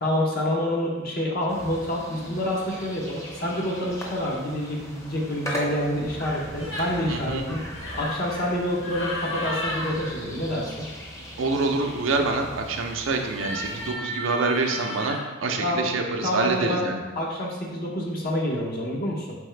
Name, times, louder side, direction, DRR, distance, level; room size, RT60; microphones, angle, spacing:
voice 1, 0.0-7.6 7.9-10.9 15.6-15.9 16.2-16.8 17.2-19.4, left 1 dB, 50° left, -3 dB, 0.7 m, -27 dB
sound 1, 1.5-13.9, equal, 15° left, 0.7 m, -39 dB
sound 2, 6.6-7.0 7.7-8.2 8.8-9.9 13.3-15.2, left 1 dB, 65° left, 1.3 m, -33 dB
voice 2, 7.1-7.4 11.4-17.0, right 3 dB, 80° right, 3 dB, 0.5 m, -26 dB
4.7 x 3.4 x 3.2 m, 1.2 s
head